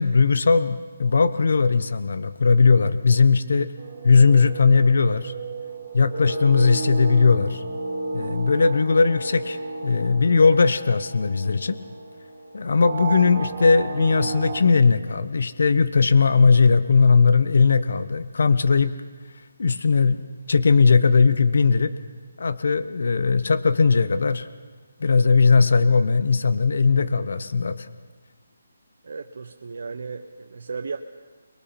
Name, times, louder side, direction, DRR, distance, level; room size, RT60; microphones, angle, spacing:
voice 1, 0.0-3.7 4.0-5.3 5.9-7.6 8.1-11.8 12.5-18.9 19.6-20.2 20.5-21.9 22.4-24.5 25.0-27.9, left 4 dB, 65° left, 12 dB, 1.0 m, -18 dB
sound 1, 3.8-14.6, right 3 dB, 45° right, 4.5 m, -33 dB
voice 2, 29.0-31.0, right 4 dB, 65° right, 4 dB, 1.1 m, -35 dB
29.5 x 22.0 x 4.3 m, 1.4 s
hypercardioid pair, 160°, 0 cm